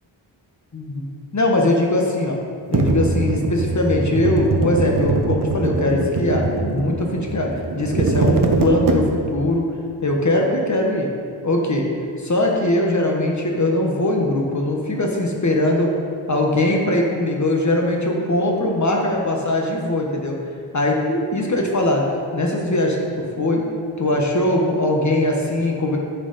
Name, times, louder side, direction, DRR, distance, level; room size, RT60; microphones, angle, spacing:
voice 1, 0.7-1.0 1.3-2.4 2.7-9.6 10.0-11.1 11.4-11.9 12.2-15.9 16.3-20.4 20.7-22.0 22.3-23.6 24.0-26.0, left 1 dB, 35° left, 0 dB, 1.2 m, -21 dB
sound 1, 2.7-9.5, right 3 dB, 45° right, 0.7 m, -22 dB
9.5 x 6.0 x 4.2 m, 2.3 s
wide cardioid pair, 105°, 47 cm